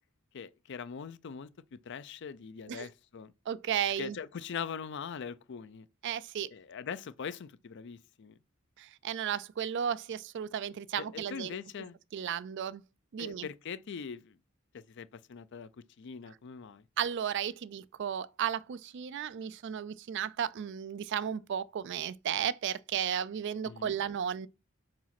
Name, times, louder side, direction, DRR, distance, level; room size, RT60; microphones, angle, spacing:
voice 1, 0.3-3.3 4.0-5.9 6.5-8.4 11.0-12.0 13.2-14.4 14.7-15.7 16.0-16.8 23.6-24.0, left 6 dB, 55° left, 0.4 m, -42 dB
voice 2, 3.5-4.2 6.0-6.5 8.8-11.6 12.1-12.8 13.1-13.5 17.0-24.5, right 8 dB, 55° right, 0.3 m, -34 dB
4.8 x 4.1 x 5.8 m
head